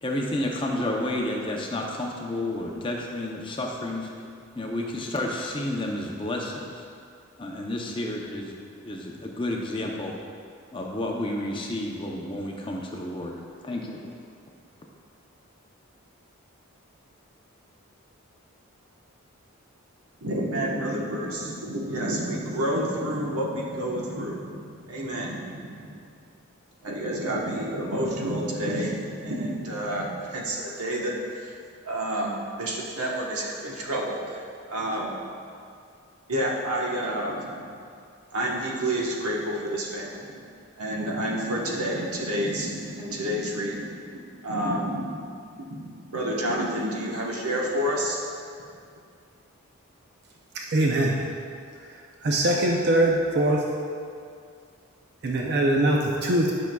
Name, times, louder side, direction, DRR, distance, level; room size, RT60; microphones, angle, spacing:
voice 1, 0.0-4.1 4.5-6.8 7.4-8.5 8.8-10.2 10.7-14.1, left 1 dB, 25° left, 0 dB, 0.6 m, -31 dB
voice 2, 20.2-26.0 26.8-31.6 31.8-32.3 32.6-35.2 36.3-37.8 38.3-40.4 40.8-48.2, right 1 dB, 90° right, -3 dB, 1.2 m, -29 dB
voice 3, 50.7-51.2 52.2-53.6 55.2-56.5, right 1 dB, 50° right, -1 dB, 0.5 m, -22 dB
10.5 x 5.9 x 2.3 m, 2.3 s
head